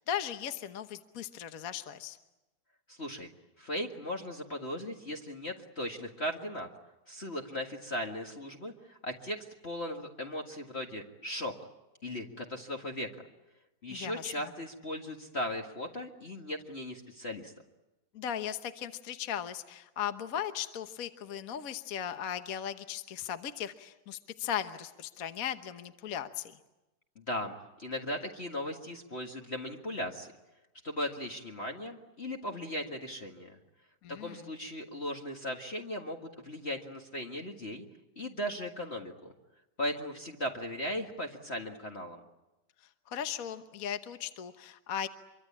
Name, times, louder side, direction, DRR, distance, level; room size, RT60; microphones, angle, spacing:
voice 1, 0.0-2.2 13.9-14.5 18.1-26.5 34.0-34.4 43.1-45.1, left 9 dB, 50° left, 10 dB, 1.4 m, -37 dB
voice 2, 2.9-3.3 3.6-6.7 7.1-11.5 12.0-13.1 13.8-17.5 27.2-30.3 30.8-33.6 34.1-37.9 38.2-39.3 39.8-42.2, left 1 dB, 35° left, 2 dB, 2.0 m, -37 dB
26.5 x 24.0 x 8.6 m, 1.0 s
omnidirectional pair, 2.1 m